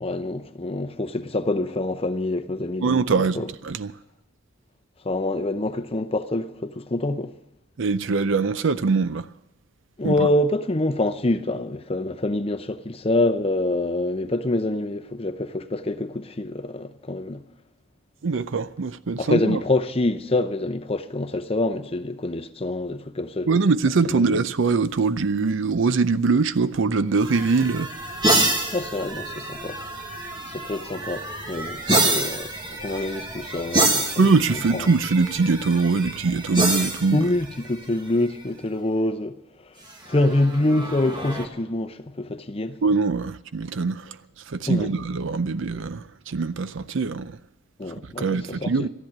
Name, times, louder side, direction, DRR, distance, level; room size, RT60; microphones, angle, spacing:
voice 1, 0.0-3.5 5.0-7.3 10.0-17.4 19.2-23.5 24.0-24.4 28.7-29.8 30.5-34.9 37.1-39.4 39.6-39.7 40.1-42.8 44.7-45.0 47.8-48.9, left 2 dB, 25° left, 0.7 m, -26 dB
voice 2, 2.8-3.9 7.8-9.3 10.0-10.1 18.2-19.6 23.5-27.9 34.2-37.3 42.8-44.2 44.5-47.4 48.2-48.9, right 4 dB, 60° right, 0.5 m, -22 dB
sound 1, 27.2-38.3 39.9-41.5, right 2 dB, 20° right, 1.4 m, -27 dB
13.5 x 10.5 x 8.6 m
head